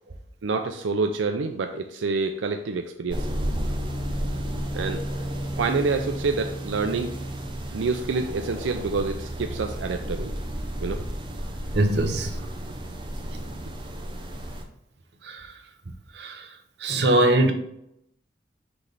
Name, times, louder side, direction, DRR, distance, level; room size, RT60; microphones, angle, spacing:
voice 1, 0.4-3.3 4.7-5.0 5.6-7.1 7.7-10.3 10.8-11.0, right 4 dB, 90° right, 5 dB, 0.5 m, -27 dB
sound 1, 3.1-14.6, right 1 dB, 25° right, 0.7 m, -32 dB
voice 2, 11.7-12.4 15.2-15.5 16.1-16.5 16.8-17.5, right 1 dB, 65° right, 5 dB, 0.8 m, -22 dB
6.1 x 3.3 x 5.2 m, 0.77 s
head